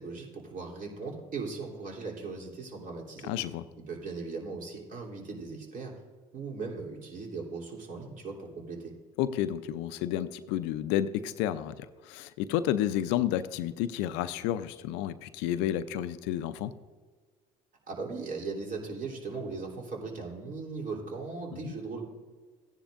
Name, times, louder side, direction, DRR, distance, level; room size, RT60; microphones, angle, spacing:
voice 1, 0.0-3.3 3.9-5.9 6.3-8.9 17.9-22.1, right 4 dB, 50° right, -1 dB, 3.3 m, -38 dB
voice 2, 3.2-3.6 9.2-16.7 21.6-21.7, left 11 dB, 75° left, 13 dB, 0.6 m, -31 dB
15.5 x 10.0 x 2.5 m, 1.4 s
hypercardioid pair, 65°, 18 cm